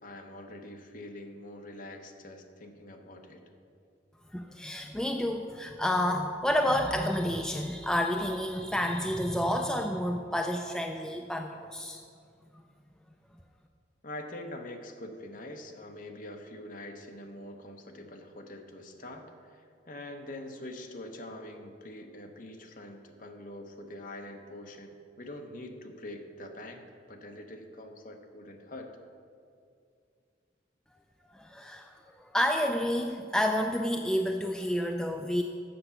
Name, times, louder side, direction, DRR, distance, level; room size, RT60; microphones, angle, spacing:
voice 1, 0.0-3.4 14.0-28.9, left 1 dB, 45° left, 4 dB, 0.9 m, -44 dB
voice 2, 4.3-12.0 12.5-12.6 31.3-35.4, equal, 5° left, 3 dB, 0.3 m, -30 dB
7.8 x 6.7 x 7.0 m, 2.4 s
head